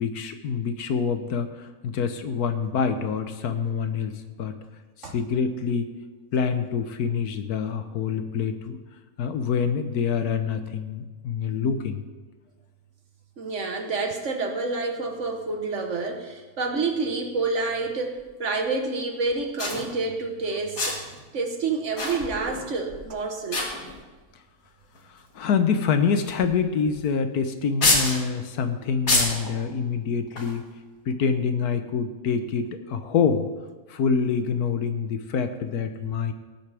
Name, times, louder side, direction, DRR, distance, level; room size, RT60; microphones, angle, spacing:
voice 1, 0.0-4.6 5.1-5.9 6.3-8.8 9.2-12.0 25.1-30.6 31.1-33.4 33.9-36.3, left 6 dB, 80° left, 9 dB, 1.4 m, -26 dB
voice 2, 13.4-21.0 21.3-23.6, right 3 dB, 55° right, 4 dB, 1.4 m, -28 dB
sound 1, 18.2-18.3 19.3-19.4 19.6-19.8 20.7-21.2 22.0-22.6 22.9-23.1 23.5-24.2 24.9-25.0 26.3-26.5 26.8-26.9 27.8-28.2 29.1-29.5 30.3-30.6, left 2 dB, 65° left, 2.4 m, -25 dB
18.5 x 8.6 x 3.4 m, 1.3 s
omnidirectional pair, 1.6 m